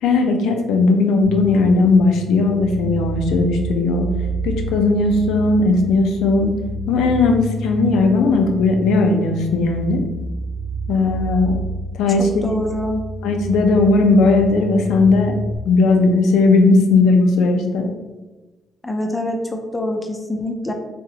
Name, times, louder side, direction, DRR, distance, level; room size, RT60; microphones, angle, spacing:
voice 1, 0.0-4.1 4.4-6.6 6.9-10.0 10.9-11.6 11.9-12.3 13.2-15.3 15.7-17.9, left 3 dB, 85° left, 4 dB, 0.4 m, -17 dB
sound 1, 1.2-15.6, right 1 dB, 40° right, 0.6 m, -29 dB
voice 2, 12.4-13.0 18.8-20.7, left 1 dB, 15° left, 3 dB, 0.4 m, -25 dB
3.6 x 2.0 x 2.8 m, 1.2 s
cardioid pair, 90°, 0 cm